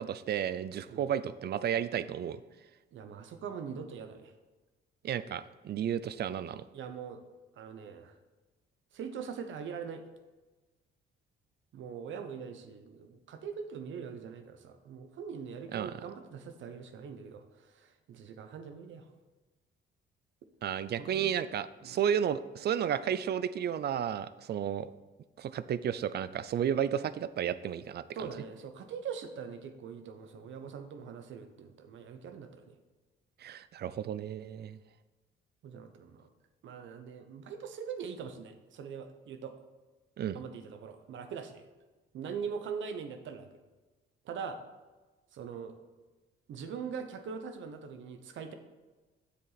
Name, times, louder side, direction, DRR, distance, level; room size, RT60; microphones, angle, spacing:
voice 1, 0.0-2.4 5.0-6.6 15.7-15.9 20.6-24.9 25.4-28.3 33.4-34.8 40.2-40.4, right 9 dB, 55° right, 15 dB, 0.5 m, -32 dB
voice 2, 2.9-4.3 6.7-7.2 7.6-8.1 8.9-10.0 11.7-19.1 21.0-21.4 21.8-22.0 28.1-32.8 35.6-36.3 36.6-39.5 40.3-41.7 42.1-43.5 44.2-44.6 45.3-45.8 46.5-48.5, right 6 dB, 70° right, 8 dB, 1.0 m, -42 dB
7.7 x 6.9 x 4.1 m, 1.2 s
cardioid pair, 90°, 20 cm